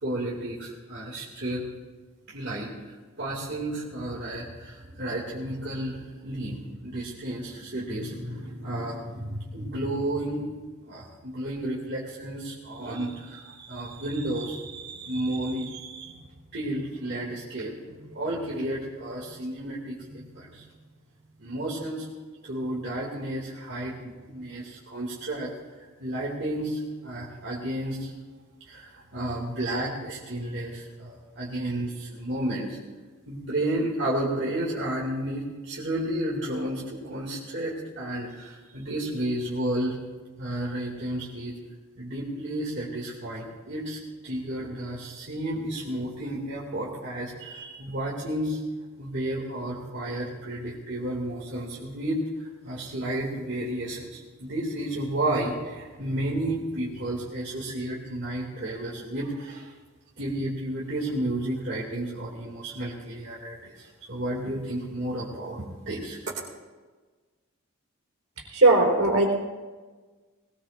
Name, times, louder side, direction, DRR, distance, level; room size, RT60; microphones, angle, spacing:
voice 1, 0.0-1.6 2.3-10.4 10.8-16.2 16.5-20.7 21.4-22.1 22.4-25.5 26.0-28.1 28.7-32.8 33.3-39.9 40.4-41.6 42.0-44.0 44.2-48.6 49.0-59.7 60.2-66.2, right 1 dB, 55° right, -6 dB, 2.4 m, -32 dB
voice 2, 68.5-69.3, right 2 dB, 75° right, -1 dB, 3.8 m, -18 dB
20.0 x 19.5 x 2.5 m, 1.4 s
head